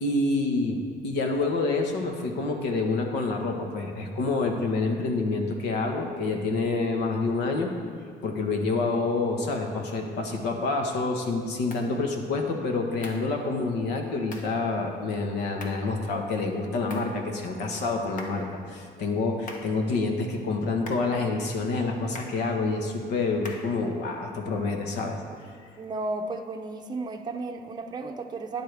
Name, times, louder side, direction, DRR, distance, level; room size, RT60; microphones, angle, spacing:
voice 1, 0.0-7.7 8.2-25.2, left 3 dB, 80° left, 3 dB, 1.5 m, -27 dB
sound 1, 11.7-11.9 13.0-13.3 14.3-14.6 15.6-15.9 16.9-17.2 18.2-18.5 19.5-19.8 20.9-21.2 22.1-22.4 23.4-23.8, left 2 dB, 50° left, 1.4 m, -42 dB
voice 2, 25.8-28.6, right 3 dB, 25° right, 3 dB, 0.6 m, -33 dB
12.0 x 10.0 x 3.5 m, 2.2 s
cardioid pair, 110°, 17 cm